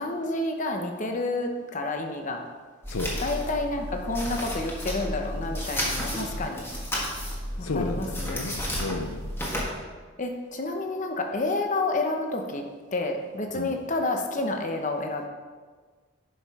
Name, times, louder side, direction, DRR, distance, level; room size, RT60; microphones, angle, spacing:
voice 1, 0.0-2.4 3.2-6.7 7.6-8.5 10.2-12.6 12.9-15.3, left 2 dB, 40° left, 4 dB, 0.9 m, -29 dB
sound 1, 2.8-9.7, equal, 10° left, 1.6 m, -32 dB
voice 2, 2.9-3.2 7.6-9.3 13.5-13.7, left 3 dB, 90° left, 7 dB, 0.7 m, -32 dB
11.0 x 5.7 x 4.8 m, 1.5 s
head